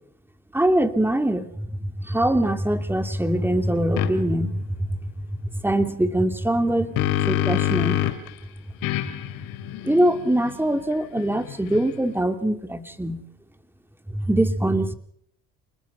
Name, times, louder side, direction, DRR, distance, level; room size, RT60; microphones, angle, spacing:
voice 1, 0.5-5.0 5.6-7.0 7.3-8.1 9.8-13.2 14.1-14.9, right 1 dB, 5° right, 8 dB, 2.6 m, -23 dB
sound 1, 4.0-4.1 6.5-8.3 8.8-12.2, left 14 dB, 80° left, 2.9 m, -27 dB
29.0 x 20.5 x 5.7 m, 0.66 s
supercardioid pair, 90°, 34 cm